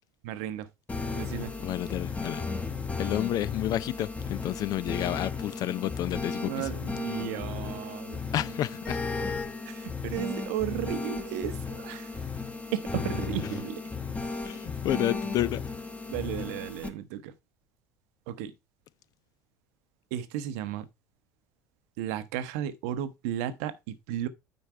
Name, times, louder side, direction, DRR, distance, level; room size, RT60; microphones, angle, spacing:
voice 1, 0.2-0.7 1.1-1.5 6.4-8.3 9.2-9.3 9.6-12.3 12.7-13.8 14.2-14.6 16.1-17.3 18.3-18.5 20.1-20.9 22.0-24.3, right 11 dB, 60° right, 0.9 m, -34 dB
sound 1, 0.9-16.9, left 4 dB, 15° left, 1.2 m, -35 dB
voice 2, 1.6-2.4 3.0-6.7 8.3-9.0 14.4-15.6, left 13 dB, 45° left, 0.5 m, -30 dB
9.3 x 4.4 x 4.3 m
figure-of-eight pair, 65°, 9 cm